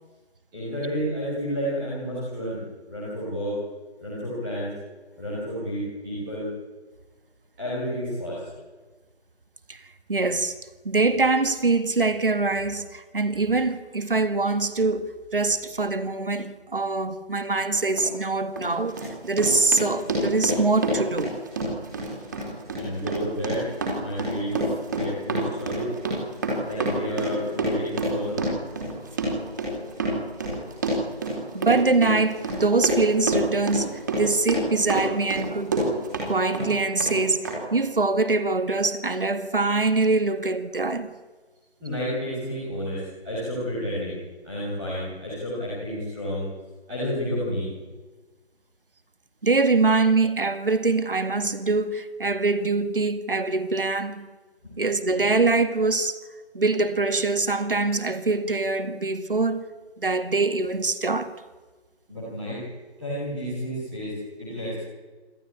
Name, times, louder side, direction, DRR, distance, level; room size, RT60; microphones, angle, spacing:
voice 1, 0.5-2.6 2.9-3.6 4.0-4.7 5.2-6.5 7.6-8.4 22.7-23.6 24.0-25.9 26.6-28.4 41.8-44.2 44.4-46.5 46.9-47.7 54.6-54.7 62.1-62.6 63.0-64.8, equal, ahead, 1.2 m, -30 dB
voice 2, 10.1-10.5 10.8-21.3 31.5-35.8 36.3-41.1 49.4-54.3 54.8-56.2 56.5-59.7 60.0-61.3, right 3 dB, 55° right, 2.0 m, -24 dB
Run, 17.9-18.1 18.6-36.3 36.5-37.2 37.4-37.5, right 2 dB, 15° right, 3.9 m, -28 dB
27.5 x 13.5 x 9.8 m
figure-of-eight pair, 170°, 33 cm